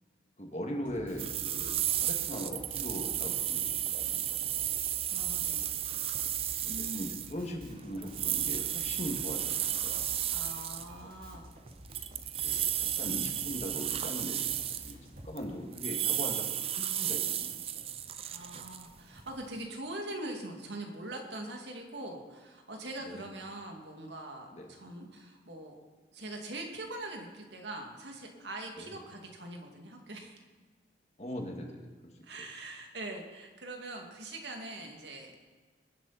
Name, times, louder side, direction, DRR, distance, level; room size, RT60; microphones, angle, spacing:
voice 1, 0.4-4.7 6.6-10.0 11.0-11.1 12.4-15.0 15.2-17.9 23.1-23.3 24.5-24.7 28.8-29.0 31.2-31.9, equal, 40° left, 2 dB, 2.1 m, -40 dB
Drum kit, 0.8-15.3, equal, 50° right, 2.7 m, -51 dB
sound 1, 1.2-10.9 11.7-15.4 15.7-19.6, right 10 dB, 35° right, 0.5 m, -33 dB
voice 2, 5.1-5.8 6.7-7.1 10.3-11.5 12.4-12.7 18.2-25.7 26.1-30.4 32.2-35.4, right 1 dB, 75° right, 2 dB, 2.4 m, -43 dB
22.0 x 10.0 x 4.3 m, 1.4 s
head